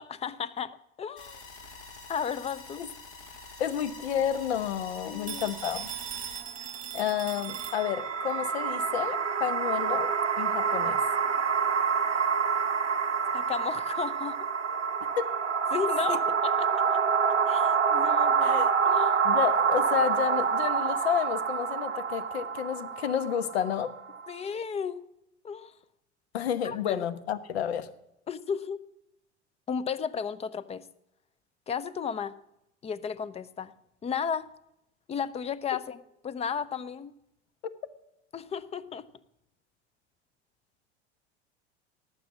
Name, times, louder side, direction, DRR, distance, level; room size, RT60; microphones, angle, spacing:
voice 1, 0.0-1.4 2.1-2.8 5.1-5.4 13.3-14.5 15.7-17.0 17.5-19.3 24.3-25.0 25.4-25.7 26.6-27.1 28.3-28.8 29.7-30.9 31.7-32.3 32.8-33.7 34.0-34.5 35.1-37.1 38.3-39.1, left 7 dB, 20° left, 16 dB, 0.6 m, -34 dB
sound 1, 1.2-6.4, left 3 dB, 40° left, 2.8 m, -46 dB
voice 2, 3.6-5.9 6.9-11.0 15.2-15.3 16.1-16.2 18.4-18.7 19.2-23.9 26.3-27.9, left 9 dB, 60° left, 13 dB, 1.1 m, -30 dB
Telephone, 5.3-8.3, right 10 dB, 25° right, 1.7 m, -39 dB
sound 2, 7.2-24.4, right 6 dB, 85° right, 0.7 m, -27 dB
18.5 x 7.4 x 7.3 m, 0.84 s
figure-of-eight pair, 75°, 35 cm